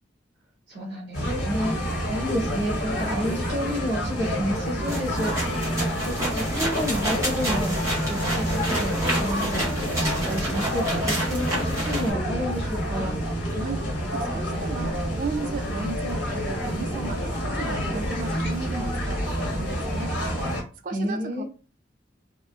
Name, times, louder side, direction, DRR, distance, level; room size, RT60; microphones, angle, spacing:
voice 1, 0.7-13.2 20.9-21.4, equal, 65° right, 1.2 m, -30 dB
sound 1, 1.1-20.6, equal, 65° left, 1.2 m, -28 dB
sound 2, 4.8-12.1, right 1 dB, 15° right, 1.0 m, -30 dB
voice 2, 13.5-20.4 20.8-21.4, right 4 dB, 45° right, 0.4 m, -35 dB
3.5 x 2.1 x 2.4 m
head